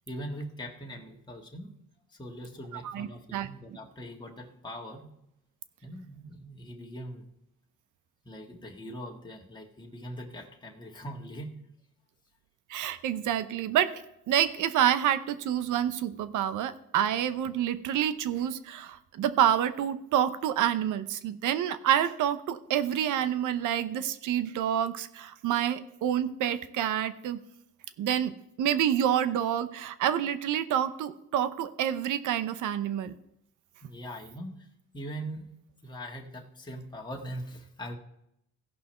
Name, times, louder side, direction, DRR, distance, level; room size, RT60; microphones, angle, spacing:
voice 1, 0.1-1.7 2.1-5.1 5.8-7.3 8.2-11.5 33.8-34.7 34.9-35.5 35.8-38.0, equal, 15° left, 0 dB, 1.7 m, -41 dB
voice 2, 2.8-3.5 12.7-14.0 14.3-27.4 28.0-33.1, right 10 dB, 85° right, 13 dB, 0.8 m, -28 dB
16.0 x 5.6 x 4.4 m, 0.80 s
cardioid pair, 90°, 30 cm